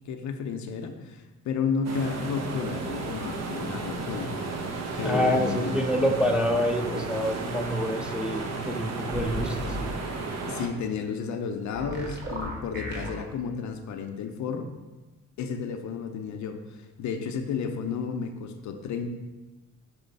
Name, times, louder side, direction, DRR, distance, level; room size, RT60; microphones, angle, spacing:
voice 1, 0.1-4.3 4.9-5.8 10.5-14.7 15.4-19.1, left 6 dB, 70° left, 6 dB, 0.7 m, -32 dB
sound 1, 1.8-10.7, right 3 dB, 60° right, 0.9 m, -33 dB
voice 2, 5.0-9.9, equal, 5° right, 2 dB, 0.6 m, -27 dB
sound 2, 9.1-9.8 11.7-13.1, right 1 dB, 35° right, 1.5 m, -34 dB
6.3 x 3.0 x 5.3 m, 1.2 s
cardioid pair, 90°, 30 cm